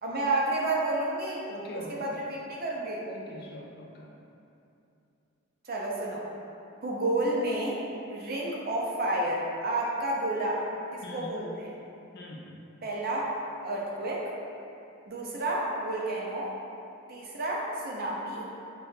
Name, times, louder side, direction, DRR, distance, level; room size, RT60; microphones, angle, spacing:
voice 1, 0.0-1.4 2.0-3.0 5.7-6.3 6.8-7.8 8.1-10.6 10.9-11.7 12.8-13.3 13.6-14.3 15.1-16.5 17.1-18.5, right 2 dB, 45° right, -3 dB, 0.5 m, -30 dB
voice 2, 1.5-2.1 3.1-4.1 11.0-11.4 12.1-12.6, left 1 dB, 50° left, -1 dB, 0.4 m, -42 dB
5.4 x 2.2 x 2.7 m, 2.7 s
head